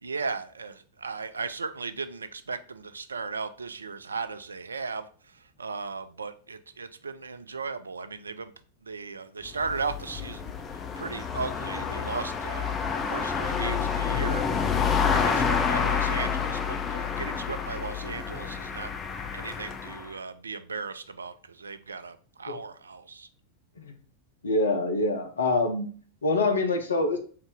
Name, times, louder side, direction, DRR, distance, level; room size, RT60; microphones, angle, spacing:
voice 1, 0.0-8.5 8.8-14.5 15.1-18.9 19.3-23.3, right 4 dB, 75° right, 12 dB, 0.3 m, -36 dB
sound 1, 9.5-20.1, left 6 dB, 25° left, 0.5 m, -28 dB
voice 2, 24.4-25.9 26.2-27.2, left 2 dB, 70° left, 6 dB, 0.7 m, -25 dB
4.5 x 2.7 x 3.6 m, 0.43 s
figure-of-eight pair, 90°, 0 cm